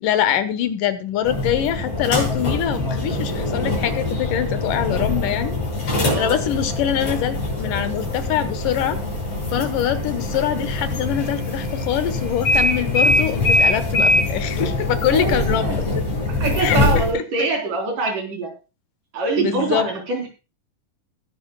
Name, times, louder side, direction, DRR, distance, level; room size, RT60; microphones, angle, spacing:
voice 1, 0.0-5.6 5.9-9.0 9.5-15.9 16.6-17.2 19.4-19.9, left 10 dB, 80° left, 11 dB, 2.9 m, -24 dB
sound 1, 1.2-17.1, left 2 dB, 50° left, 7.6 m, -23 dB
voice 2, 6.1-6.4 15.0-15.8 16.1-18.5 19.1-20.3, right 3 dB, 75° right, 2 dB, 5.5 m, -24 dB
20.0 x 10.5 x 2.3 m, 0.30 s
omnidirectional pair, 3.7 m